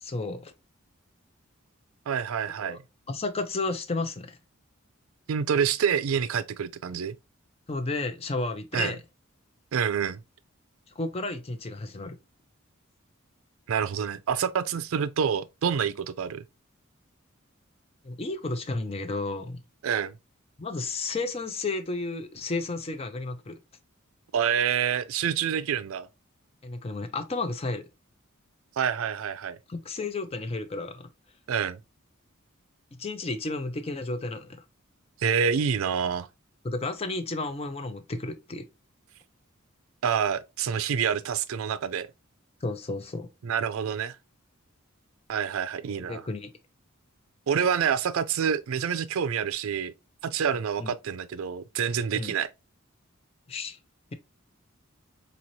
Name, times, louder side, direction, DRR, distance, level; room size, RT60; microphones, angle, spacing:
voice 1, 0.0-0.5 2.6-2.8 3.1-4.4 7.7-9.0 11.0-12.2 18.0-19.6 20.6-23.6 26.6-27.9 29.7-31.1 33.0-34.6 36.6-38.7 42.6-43.3 45.8-46.5 50.8-50.9 52.1-52.3 53.5-53.8, left 3 dB, 30° left, 0.5 m, -32 dB
voice 2, 2.1-2.8 5.3-7.2 8.7-8.9 9.7-10.2 13.7-16.4 19.8-20.1 24.3-26.1 28.8-29.6 31.5-31.8 35.2-36.3 40.0-42.1 43.4-44.2 45.3-46.2 47.5-49.9 50.2-52.5, right 7 dB, 80° right, 0.4 m, -27 dB
4.0 x 3.0 x 2.6 m
head